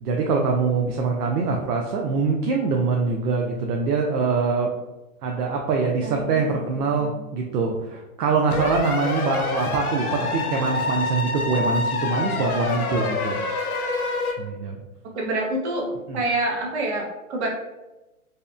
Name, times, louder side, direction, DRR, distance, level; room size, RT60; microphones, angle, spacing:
voice 1, 0.0-4.7 5.2-13.4 14.4-14.8 16.1-16.2, right 4 dB, 90° right, 1 dB, 0.6 m, -24 dB
voice 2, 6.0-7.2 15.1-17.5, right 2 dB, 50° right, -1 dB, 0.6 m, -28 dB
sound 1, 8.5-14.3, left 3 dB, 75° left, 0.7 m, -26 dB
2.8 x 2.1 x 2.4 m, 1.0 s
hypercardioid pair, 165°, 45 cm